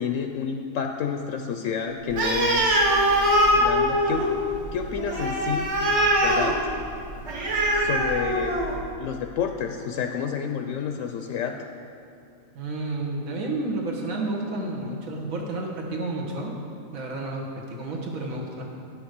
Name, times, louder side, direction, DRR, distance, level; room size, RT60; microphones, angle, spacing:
voice 1, 0.0-2.8 3.5-4.4 4.7-5.7 6.2-6.6 7.7-8.6 9.0-11.5, left 7 dB, 75° left, 4 dB, 0.9 m, -29 dB
Animal, 2.1-8.9, equal, 55° right, 1.5 m, -23 dB
voice 2, 12.6-16.5 16.9-18.6, right 2 dB, 80° right, -1 dB, 1.8 m, -31 dB
10.0 x 5.9 x 6.5 m, 2.5 s
omnidirectional pair, 1.4 m